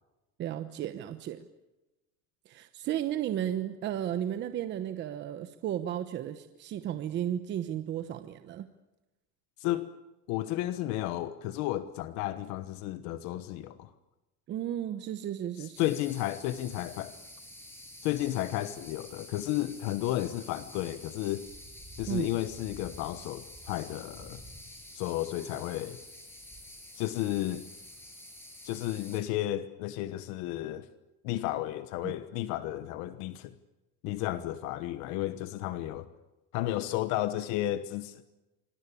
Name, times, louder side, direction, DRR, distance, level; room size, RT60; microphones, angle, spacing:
voice 1, 0.4-1.4 2.5-8.7 14.5-15.8 22.1-22.3 32.0-32.2, right 11 dB, 35° right, 1.0 m, -34 dB
voice 2, 9.6-9.9 10.3-13.9 15.6-17.2 18.0-21.5 21.9-24.4 24.9-26.0 26.9-27.6 28.6-30.9 31.2-33.5 34.0-36.1 36.5-38.2, left 14 dB, 70° left, 1.2 m, -33 dB
sound 1, 15.7-29.2, left 1 dB, 10° left, 6.8 m, -48 dB
26.5 x 20.0 x 8.5 m
cardioid pair, 175°, 30 cm